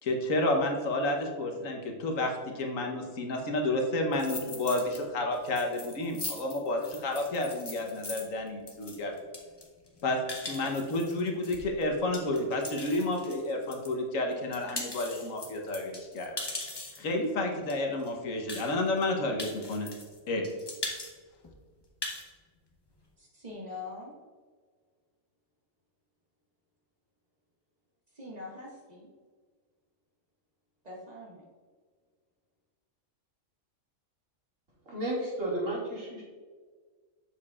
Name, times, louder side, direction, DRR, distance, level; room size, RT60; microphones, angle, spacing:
voice 1, 0.0-9.1 10.0-10.2 10.5-16.3 17.0-19.9 20.3-20.4, left 2 dB, 75° left, 2 dB, 1.4 m, -30 dB
sound 1, 4.1-5.0 5.3-13.9 14.3-17.1 17.7-17.8 18.0-18.1 18.5-19.0 19.4-20.2 20.4-21.1 21.4-21.5 21.8-22.3, left 2 dB, 20° left, 0.9 m, -40 dB
voice 2, 23.2-24.1 28.1-29.1 30.8-31.5, left 2 dB, 30° right, -4 dB, 1.8 m, -43 dB
voice 3, 34.9-36.2, right 1 dB, 70° right, -6 dB, 2.5 m, -32 dB
7.5 x 6.7 x 2.4 m, 1.5 s
omnidirectional pair, 1.4 m